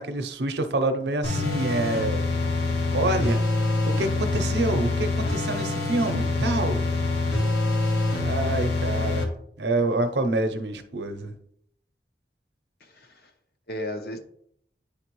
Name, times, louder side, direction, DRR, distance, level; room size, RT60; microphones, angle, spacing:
voice 1, 0.0-2.3 2.9-3.4 3.9-6.9 8.2-9.3 9.6-11.4, right 2 dB, 80° right, 7 dB, 0.7 m, -27 dB
sound 1, 1.2-9.2, left 2 dB, 80° left, 1.1 m, -25 dB
voice 2, 8.4-8.7 12.8-13.3 13.7-14.2, left 1 dB, 60° left, 5 dB, 0.7 m, -36 dB
9.8 x 3.3 x 3.1 m, 0.69 s
head